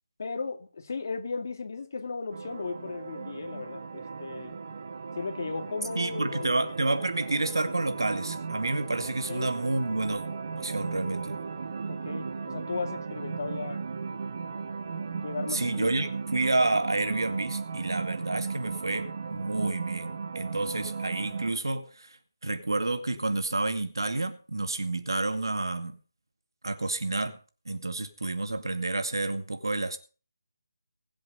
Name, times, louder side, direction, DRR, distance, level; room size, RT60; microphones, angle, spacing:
voice 1, 0.2-4.6 5.2-6.5 9.3-9.5 11.9-13.8 15.2-15.9, left 4 dB, 45° left, 2.4 m, -36 dB
sound 1, 2.3-21.5, right 5 dB, 40° right, 1.3 m, -36 dB
voice 2, 6.0-10.2 10.6-11.4 15.5-22.2 22.4-26.0 26.6-27.4 27.7-30.0, right 2 dB, 85° right, 2.3 m, -29 dB
20.0 x 7.7 x 5.5 m
figure-of-eight pair, 170°, 2 cm